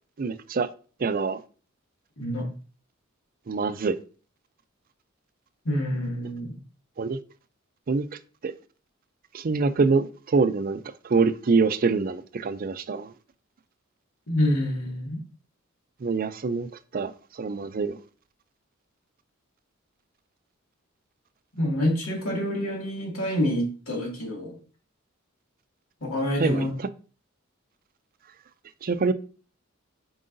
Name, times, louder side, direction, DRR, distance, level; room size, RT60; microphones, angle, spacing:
voice 1, 0.2-0.7 1.0-1.4 3.5-4.0 7.0-7.2 7.9-8.0 8.4-8.5 9.3-13.1 16.0-18.0 26.4-26.9 28.8-29.1, right 4 dB, 45° right, 0.4 m, -25 dB
voice 2, 5.7-6.5 14.3-15.2 21.6-24.6 26.0-26.7, left 1 dB, 90° left, 2.1 m, -27 dB
7.6 x 4.8 x 2.6 m
head